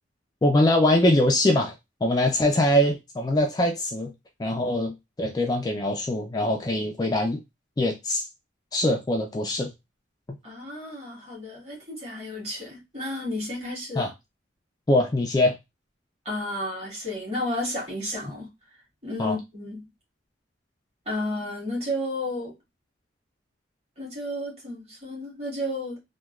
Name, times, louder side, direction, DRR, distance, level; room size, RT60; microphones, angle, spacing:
voice 1, 0.4-1.7 2.0-4.1 4.4-4.9 5.2-7.4 7.8-8.2 8.7-9.7 14.0-14.1 14.9-15.5 19.2-19.3, left 1 dB, 20° left, 0.3 m, -22 dB
voice 2, 10.4-14.1 16.2-18.5 19.0-19.9 21.0-22.5 24.0-26.0, left 1 dB, 35° right, 1.6 m, -32 dB
3.0 x 2.2 x 2.3 m
head